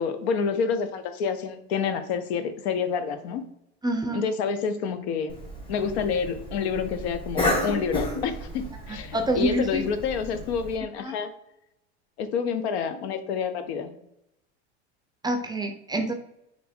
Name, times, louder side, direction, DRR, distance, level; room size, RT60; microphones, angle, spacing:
voice 1, 0.0-3.4 4.1-5.3 5.7-11.3 12.2-14.0, left 6 dB, 75° left, 10 dB, 0.7 m, -28 dB
voice 2, 3.8-4.3 9.1-9.9 11.0-11.2 15.2-16.1, right 1 dB, 15° right, 6 dB, 0.4 m, -26 dB
Cough, 5.3-10.8, left 1 dB, 15° left, 1.2 m, -32 dB
3.2 x 2.9 x 4.2 m, 0.80 s
hypercardioid pair, 100°, 32 cm